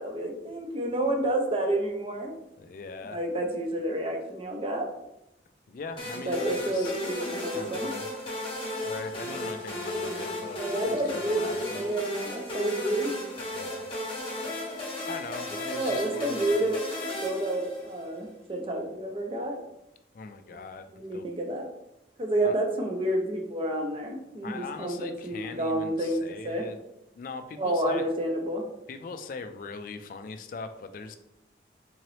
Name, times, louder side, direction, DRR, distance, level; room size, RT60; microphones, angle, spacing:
voice 1, 0.0-2.3 3.1-4.9 6.3-7.9 10.5-13.1 15.7-16.8 17.2-19.6 20.9-21.7 22.2-26.6 27.6-28.6, right 1 dB, 30° right, 2 dB, 0.5 m, -29 dB
voice 2, 2.6-3.2 5.7-7.0 7.5-8.1 8.8-11.9 13.5-13.8 14.8-16.8 20.1-21.2 22.4-22.6 24.4-26.8 27.2-28.0 28.9-31.2, left 4 dB, 50° left, 8 dB, 0.3 m, -40 dB
sound 1, 6.0-18.2, left 1 dB, 30° left, 0.8 m, -35 dB
3.8 x 2.9 x 3.1 m, 0.86 s
head